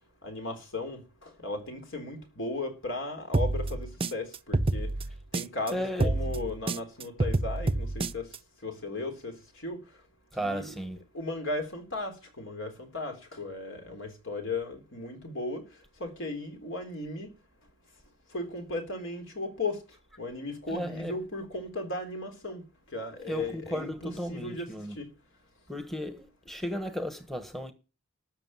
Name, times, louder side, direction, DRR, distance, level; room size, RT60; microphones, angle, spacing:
voice 1, 0.2-4.9 5.3-8.3 8.6-9.8 10.4-10.8 11.1-15.7 16.0-17.3 18.3-25.1, left 2 dB, 65° left, 3.8 m, -36 dB
sound 1, 3.3-5.7 6.0-8.4, right 2 dB, 25° right, 0.6 m, -28 dB
voice 2, 5.7-6.1 10.3-11.0 20.7-21.2 23.2-24.9 25.7-27.7, equal, ahead, 1.3 m, -35 dB
13.0 x 6.6 x 9.1 m
head